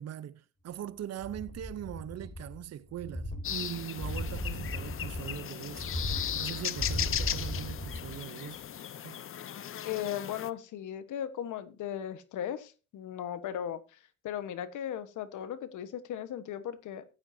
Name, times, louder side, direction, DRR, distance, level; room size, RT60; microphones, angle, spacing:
voice 1, 0.0-5.9 6.3-8.6 9.0-9.2, right 11 dB, 55° right, 0.8 m, -41 dB
sound 1, 1.2-2.6 2.9-8.2 8.6-8.7, left 1 dB, 15° left, 4.3 m, -37 dB
sound 2, 3.4-10.5, left 9 dB, 45° left, 0.7 m, -37 dB
voice 2, 9.8-14.0 14.2-17.0, left 10 dB, 80° left, 1.3 m, -37 dB
14.5 x 8.9 x 2.7 m
cardioid pair, 90°, 30 cm